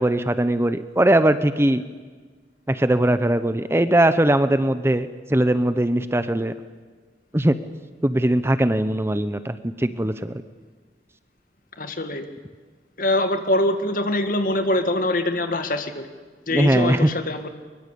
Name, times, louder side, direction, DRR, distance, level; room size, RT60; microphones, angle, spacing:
voice 1, 0.0-1.8 2.7-6.5 7.3-7.6 8.0-10.4 16.5-17.1, right 1 dB, 15° right, 11 dB, 0.7 m, -20 dB
voice 2, 11.8-12.3 13.0-16.1 16.5-17.5, left 1 dB, 50° left, 7 dB, 2.0 m, -23 dB
23.0 x 22.5 x 8.5 m, 1.5 s
head